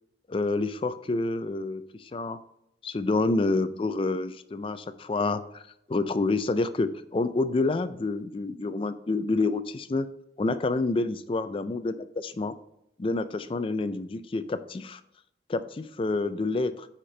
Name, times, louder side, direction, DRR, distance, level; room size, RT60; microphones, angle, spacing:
voice 1, 0.3-2.4 2.8-5.6 5.9-10.1 10.4-12.5 13.0-15.0 15.5-16.9, left 3 dB, 30° left, 12 dB, 0.4 m, -28 dB
9.8 x 4.3 x 3.3 m, 0.80 s
head